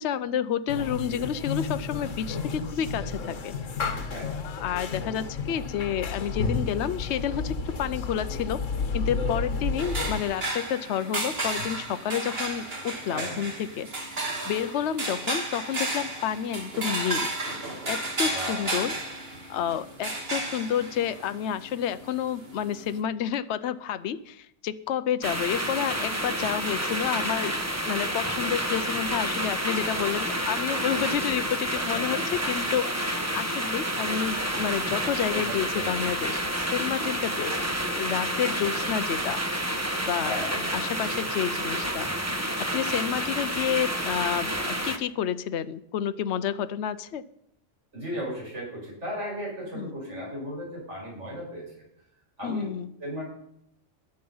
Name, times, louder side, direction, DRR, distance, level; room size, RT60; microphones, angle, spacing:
voice 1, 0.0-3.5 4.1-8.6 8.9-13.9 14.5-17.3 17.9-18.9 19.5-27.6 27.8-32.2 32.5-37.6 37.9-39.7 40.1-40.4 40.7-42.1 42.6-47.2 49.7-49.9 52.4-52.9, left 9 dB, 70° left, 12 dB, 0.9 m, -30 dB
sound 1, 0.7-10.2, left 4 dB, 85° left, 1.6 m, -31 dB
voice 2, 4.0-4.5 13.1-13.4 18.2-18.9 30.9-31.2 31.9-32.3 35.3-36.0 37.5-37.8 38.6-38.8 40.2-41.0 47.9-51.9 52.4-52.7 53.0-53.2, equal, 70° right, -4 dB, 6.0 m, -36 dB
sound 2, 9.8-23.0, right 2 dB, 50° right, 2.3 m, -33 dB
sound 3, 25.2-45.0, right 1 dB, 15° right, 1.2 m, -29 dB
22.0 x 7.8 x 5.5 m, 0.75 s
omnidirectional pair, 1.3 m